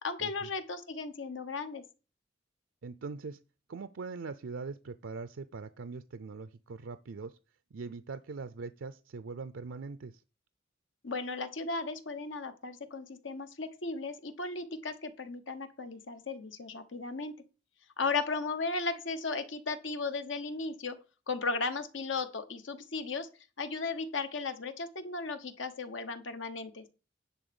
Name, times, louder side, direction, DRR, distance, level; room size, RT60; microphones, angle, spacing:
voice 1, 0.0-1.8 11.0-17.3 18.0-21.0 21.3-23.3 23.6-26.9, left 4 dB, 90° left, 1.2 m, -36 dB
voice 2, 2.8-3.4 3.7-7.3 7.7-10.2, right 4 dB, 90° right, 0.5 m, -42 dB
10.0 x 3.9 x 6.9 m
head